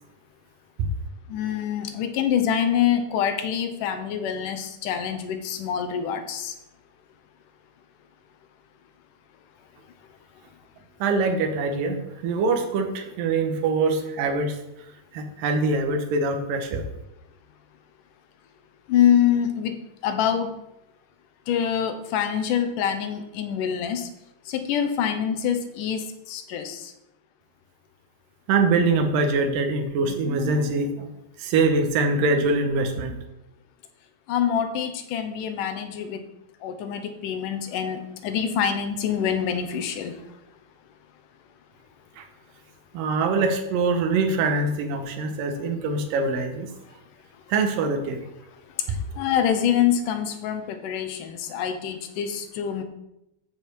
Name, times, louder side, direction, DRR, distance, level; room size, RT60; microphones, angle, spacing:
voice 1, 1.3-6.5 18.9-19.7 20.0-20.5 21.5-24.1 24.5-26.8 34.3-36.2 36.6-40.2 49.2-52.8, left 9 dB, 75° left, 8 dB, 2.4 m, -25 dB
voice 2, 11.0-14.6 15.1-16.8 28.5-31.1 31.4-33.1 42.2-42.3 42.9-46.7 47.5-48.2, right 3 dB, 80° right, 5 dB, 2.8 m, -23 dB
13.5 x 5.5 x 4.6 m, 0.87 s
omnidirectional pair, 3.9 m